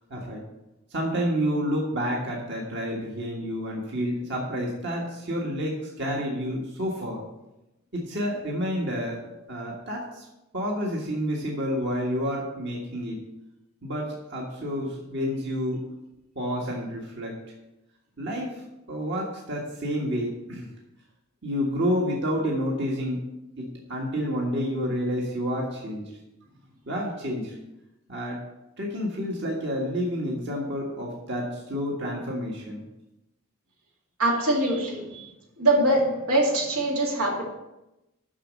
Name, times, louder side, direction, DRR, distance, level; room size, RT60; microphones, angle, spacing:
voice 1, 0.1-0.4 0.9-7.2 7.9-9.2 9.5-10.3 10.5-13.2 13.8-15.8 16.4-17.4 18.2-20.7 21.4-23.2 23.6-26.1 26.9-27.6 28.1-28.4 28.8-32.8, equal, 50° right, -2 dB, 1.6 m, -29 dB
voice 2, 34.2-35.3 35.6-37.4, right 1 dB, 85° right, -1 dB, 2.4 m, -23 dB
7.3 x 6.3 x 7.5 m, 0.94 s
head